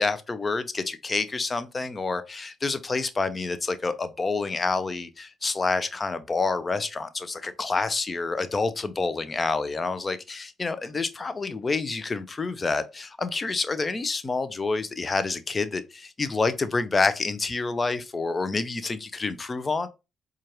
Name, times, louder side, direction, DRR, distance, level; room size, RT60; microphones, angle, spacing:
voice 1, 0.0-19.9, left 3 dB, 35° left, 0.6 m, -28 dB
4.4 x 2.5 x 2.9 m
supercardioid pair, 55°, 0 cm